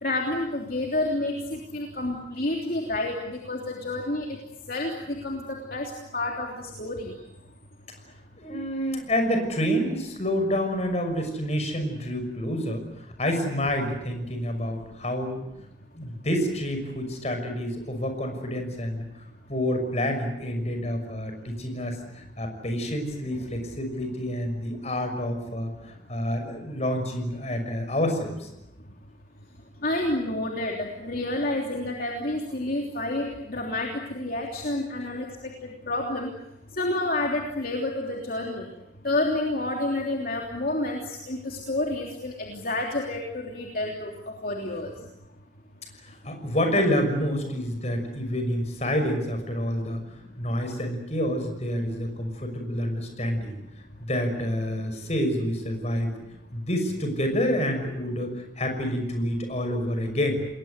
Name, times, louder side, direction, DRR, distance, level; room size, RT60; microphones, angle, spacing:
voice 1, 0.0-4.4 4.7-7.1 29.8-35.3 35.6-36.3 36.7-38.7 39.0-44.9, left 2 dB, 55° left, 0 dB, 3.2 m, -29 dB
voice 2, 8.4-12.8 13.2-15.4 15.9-19.0 19.5-28.5 45.0-45.1 46.0-50.0 50.4-53.5 54.0-56.1 56.5-60.4, equal, 40° left, 6 dB, 6.0 m, -28 dB
29.0 x 21.0 x 8.1 m, 0.88 s
head